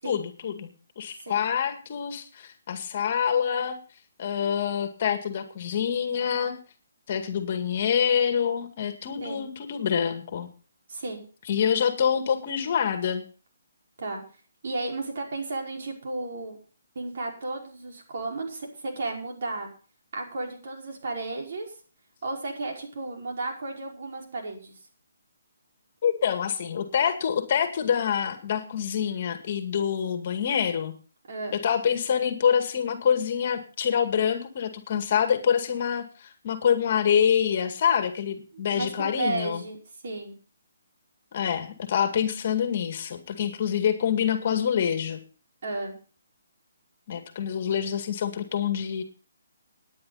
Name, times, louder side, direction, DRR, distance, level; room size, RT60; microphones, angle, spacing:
voice 1, 0.0-3.8 4.2-6.6 7.1-10.5 11.5-13.2 26.0-30.9 31.6-39.6 41.3-45.2 47.1-49.0, left 8 dB, 45° left, 7 dB, 2.1 m, -26 dB
voice 2, 10.9-11.2 14.0-14.2 14.6-16.6 16.9-19.7 20.1-21.7 22.2-24.8 31.3-31.6 38.5-39.8 40.0-40.3 45.6-45.9, right 2 dB, 55° right, 0 dB, 5.1 m, -33 dB
17.5 x 9.9 x 4.1 m, 0.38 s
hypercardioid pair, 155°, 0 cm